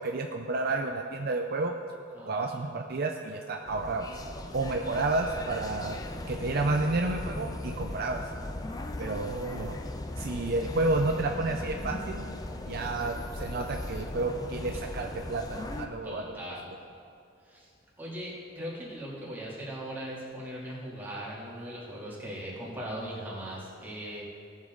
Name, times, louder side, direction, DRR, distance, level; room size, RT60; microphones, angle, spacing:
voice 1, 0.0-1.7 2.2-4.1 4.5-6.0 6.3-8.2 9.0-9.7 10.2-12.2 12.7-16.3, right 2 dB, 50° right, 3 dB, 0.6 m, -30 dB
voice 2, 2.1-2.7 4.7-4.9 16.0-16.7 17.5-17.7 18.0-24.2, equal, 10° right, -7 dB, 2.5 m, -39 dB
sound 1, 3.7-15.9, left 1 dB, 20° left, 0.5 m, -38 dB
17.5 x 7.4 x 3.8 m, 2.5 s
head